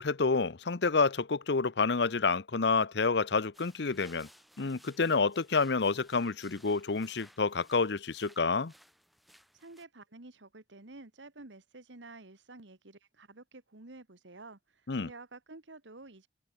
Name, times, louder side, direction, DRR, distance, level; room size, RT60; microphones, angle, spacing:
voice 1, 0.0-4.3 4.6-8.7 14.9-15.1, left 4 dB, 65° left, 0.8 m, -28 dB
sound 1, 3.5-9.8, equal, ahead, 5.1 m, -61 dB
voice 2, 9.5-16.3, right 2 dB, 85° right, 1.9 m, -51 dB
head